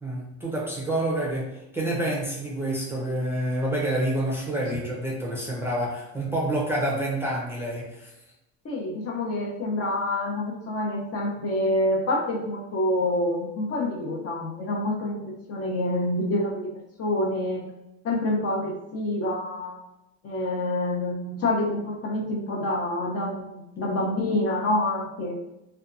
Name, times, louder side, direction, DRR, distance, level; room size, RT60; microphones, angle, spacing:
voice 1, 0.0-8.1, right 1 dB, 5° right, -4 dB, 0.5 m, -28 dB
voice 2, 8.6-16.7 17.0-17.6 18.0-19.8 20.2-25.3, left 1 dB, 40° left, -2 dB, 0.7 m, -27 dB
2.7 x 2.3 x 2.5 m, 0.90 s
supercardioid pair, 115°, 35 cm